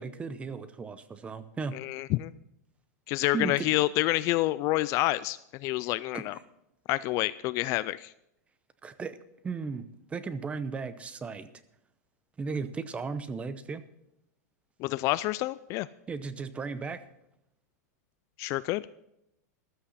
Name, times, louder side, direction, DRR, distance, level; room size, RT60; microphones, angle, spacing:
voice 1, 0.0-1.8 3.3-3.7 6.1-6.2 8.8-9.2 9.4-11.5 12.4-13.8 16.1-17.0, right 4 dB, 15° right, 13 dB, 0.8 m, -35 dB
voice 2, 1.7-2.3 3.1-6.3 6.9-8.1 14.8-15.9 18.4-18.8, left 18 dB, 35° left, 17 dB, 0.3 m, -28 dB
14.5 x 12.5 x 4.1 m, 0.81 s
supercardioid pair, 145°, 9 cm